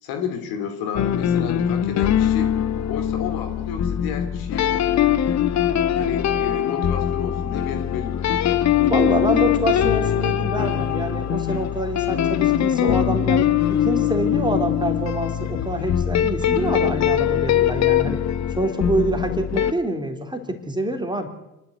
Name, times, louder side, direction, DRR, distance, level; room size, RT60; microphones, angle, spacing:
voice 1, 0.0-2.5 2.9-4.8 5.9-8.3, left 7 dB, 55° left, 7 dB, 2.7 m, -32 dB
sound 1, 1.0-19.7, left 10 dB, 40° left, 1.3 m, -22 dB
voice 2, 8.9-18.2 18.6-21.3, right 1 dB, 10° right, 5 dB, 3.7 m, -26 dB
27.5 x 12.5 x 8.2 m, 0.94 s
figure-of-eight pair, 60°, 42 cm